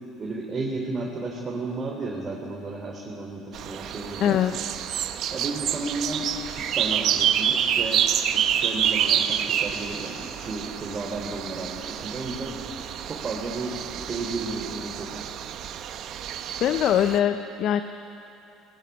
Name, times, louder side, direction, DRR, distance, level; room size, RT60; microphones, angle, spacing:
voice 1, 0.2-4.4 5.3-6.3 6.6-8.0 8.3-12.6 13.0-15.2, right 3 dB, 35° right, -2 dB, 3.3 m, -33 dB
sound 1, 3.5-17.2, right 9 dB, 60° right, 1.0 m, -28 dB
voice 2, 4.2-4.5 16.6-17.8, left 10 dB, 60° left, 9 dB, 0.8 m, -22 dB
19.0 x 18.0 x 9.8 m, 2.8 s
supercardioid pair, 85°, 0 cm